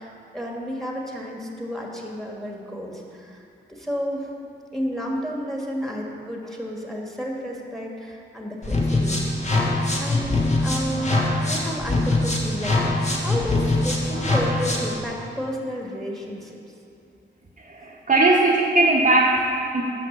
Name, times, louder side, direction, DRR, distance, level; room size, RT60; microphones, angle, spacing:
voice 1, 0.0-3.4 3.7-4.3 4.7-9.4 10.0-16.5, equal, ahead, -1 dB, 1.8 m, -31 dB
sound 1, 8.6-15.0, left 2 dB, 35° left, 1.5 m, -23 dB
voice 2, 17.6-19.8, right 2 dB, 40° right, -2 dB, 1.0 m, -19 dB
6.4 x 5.9 x 7.3 m, 2.7 s
cardioid pair, 50°, 20 cm